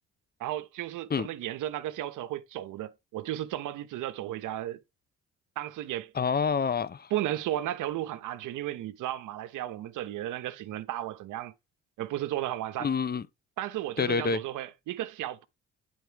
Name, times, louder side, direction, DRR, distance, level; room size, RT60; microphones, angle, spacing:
voice 1, 0.4-4.8 5.6-6.1 7.1-11.5 12.0-12.9 13.6-15.4, right 13 dB, 90° right, 1.1 m, -34 dB
voice 2, 6.1-7.1 12.8-13.2 14.0-14.4, left 5 dB, 30° left, 0.8 m, -27 dB
10.5 x 4.5 x 4.6 m
cardioid pair, 90°, 30 cm